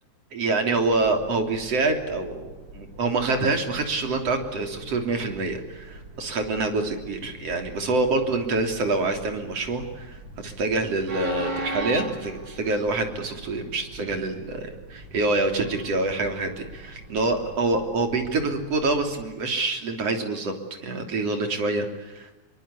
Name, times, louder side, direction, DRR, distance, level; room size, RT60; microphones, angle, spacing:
voice 1, 0.3-20.5 20.8-22.4, right 3 dB, 55° right, 5 dB, 4.3 m, -26 dB
Train, 0.7-19.2, right 1 dB, 85° right, 8.6 m, -41 dB
27.0 x 23.5 x 8.4 m, 1.1 s
omnidirectional pair, 3.3 m